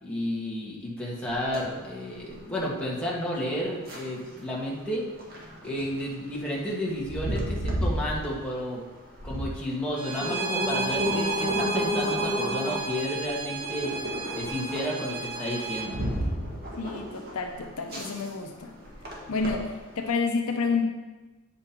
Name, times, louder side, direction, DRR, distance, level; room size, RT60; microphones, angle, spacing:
voice 1, 0.0-5.0 5.6-8.8 9.2-14.0 14.3-16.0, equal, 5° left, -5 dB, 1.6 m, -32 dB
sound 1, 1.3-20.1, equal, 45° right, 1.7 m, -33 dB
Bowed string instrument, 9.9-15.9, right 4 dB, 70° right, 0.9 m, -33 dB
voice 2, 16.8-18.7 19.3-20.8, left 4 dB, 70° left, 4 dB, 0.7 m, -29 dB
8.7 x 5.6 x 4.4 m, 1.2 s
head